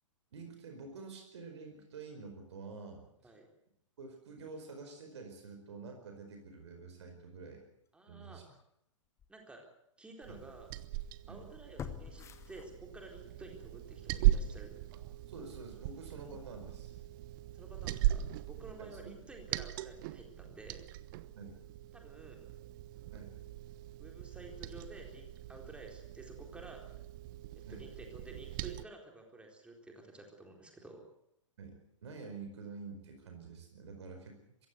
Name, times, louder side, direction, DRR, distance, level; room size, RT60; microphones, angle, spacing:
voice 1, 0.3-3.3 4.0-7.6 8.1-8.4 10.3-10.4 11.3-11.4 14.9-15.0 15.3-16.9 18.8-19.1 21.4-21.6 23.1-23.3 27.6-27.8 31.6-31.8 32.0-34.7, right 4 dB, 60° right, 4 dB, 4.8 m, -48 dB
voice 2, 7.9-8.4 9.3-9.7 10.0-10.7 11.3-14.8 17.5-20.9 21.9-22.5 24.0-26.9 27.5-31.1, right 2 dB, 5° right, 2 dB, 4.1 m, -52 dB
sound 1, 8.5-8.6 9.2-9.3 11.8-13.2 13.6-13.7, left 8 dB, 15° left, 1.3 m, -46 dB
Liquid, 10.2-28.8, right 14 dB, 40° right, 1.0 m, -38 dB
22.5 x 16.5 x 8.1 m, 0.76 s
figure-of-eight pair, 110°, 16 cm